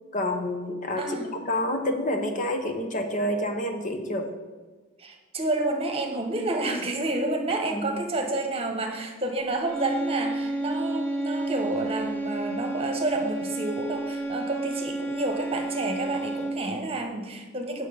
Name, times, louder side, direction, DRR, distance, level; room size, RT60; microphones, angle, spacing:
voice 1, 0.1-1.2 1.5-4.3 7.7-8.0, left 1 dB, 40° left, 5 dB, 0.9 m, -28 dB
voice 2, 1.0-1.3 5.0-17.9, right 2 dB, 30° right, 3 dB, 1.2 m, -29 dB
sound 1, 9.6-16.8, right 2 dB, 5° left, 1.0 m, -31 dB
9.1 x 6.5 x 5.1 m, 1.4 s
head